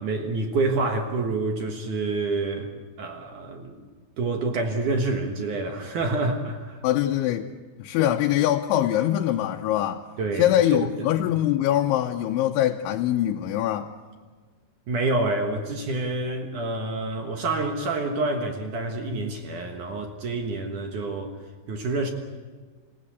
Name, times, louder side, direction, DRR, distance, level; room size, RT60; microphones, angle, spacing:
voice 1, 0.0-2.7 3.0-6.8 8.0-8.1 10.2-11.1 14.9-21.3 21.7-22.1, right 3 dB, 60° right, 4 dB, 2.4 m, -28 dB
voice 2, 6.8-7.5 7.8-10.0 10.4-13.9, left 12 dB, 90° left, 2 dB, 3.2 m, -23 dB
27.0 x 17.0 x 8.3 m, 1.4 s
omnidirectional pair, 5.3 m